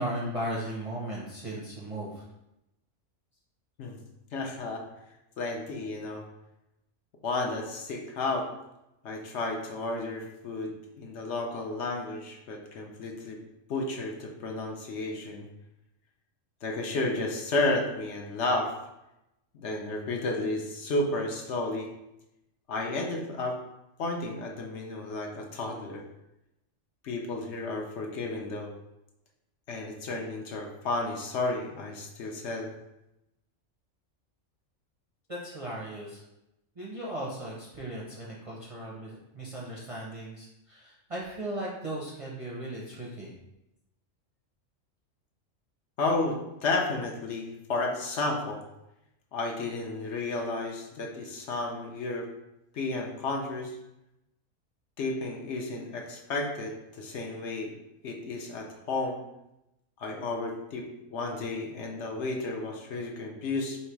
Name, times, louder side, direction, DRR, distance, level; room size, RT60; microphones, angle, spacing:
voice 1, 0.0-2.2 35.3-36.2 36.8-43.3, right 1 dB, 35° right, -5 dB, 0.5 m, -37 dB
voice 2, 4.3-4.8 5.4-6.2 7.2-8.5 9.0-13.4 13.7-15.5 16.6-18.7 19.5-21.9 22.7-23.6 24.0-26.0 27.0-28.7 29.7-32.7 46.0-48.7 49.3-52.3 52.7-53.8 55.0-57.7 58.0-59.2 60.0-63.8, left 2 dB, 65° left, 1 dB, 0.9 m, -32 dB
3.1 x 2.9 x 4.6 m, 0.89 s
omnidirectional pair, 1.3 m